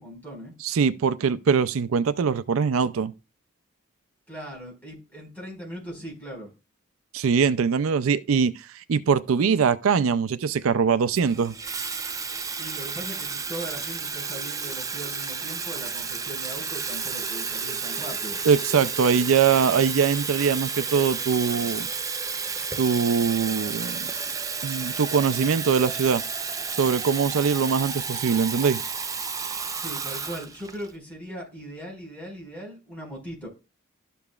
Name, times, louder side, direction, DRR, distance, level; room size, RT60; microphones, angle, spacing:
voice 1, 0.0-0.5 4.3-6.5 12.6-18.4 29.7-33.5, right 1 dB, 5° left, 4.8 m, -39 dB
voice 2, 0.6-3.1 7.1-11.5 18.5-21.9 22.8-24.1 24.6-26.2 26.7-28.8, right 6 dB, 85° right, 0.4 m, -22 dB
Water tap faucet / Fill (with liquid), 11.1-30.9, right 5 dB, 15° right, 0.4 m, -32 dB
12.5 x 6.9 x 2.4 m
head